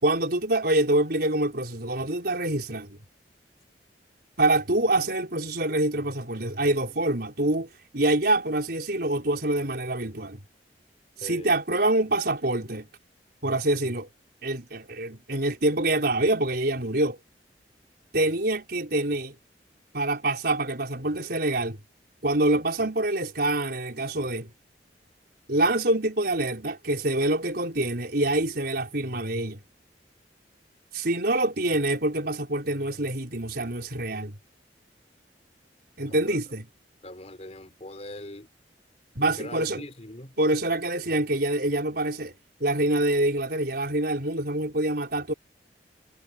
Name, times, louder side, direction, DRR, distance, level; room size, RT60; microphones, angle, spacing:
voice 1, 0.0-3.0 4.4-10.4 11.2-12.9 13.4-14.1 14.4-17.2 18.1-19.4 19.9-21.8 22.2-24.5 25.5-29.6 30.9-34.4 36.0-36.7 39.2-39.8 40.4-42.3 42.6-45.3, right 1 dB, 60° right, 5.2 m, -26 dB
voice 2, 11.2-11.5 36.1-36.4 37.0-38.5 39.4-40.4, left 1 dB, 40° left, 4.1 m, -41 dB
head